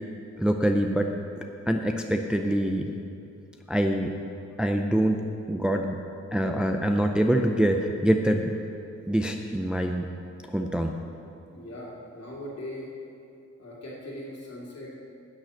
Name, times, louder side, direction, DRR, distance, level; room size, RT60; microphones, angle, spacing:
voice 1, 0.4-1.1 1.4-2.9 3.7-4.1 4.6-5.2 5.5-6.0 6.3-8.5 9.1-10.1 10.5-10.9, right 1 dB, 5° right, 4 dB, 0.4 m, -25 dB
voice 2, 11.5-12.9 13.6-14.9, left 1 dB, 55° left, -4 dB, 2.8 m, -40 dB
10.0 x 9.0 x 6.4 m, 2.6 s
wide cardioid pair, 150°, 30 cm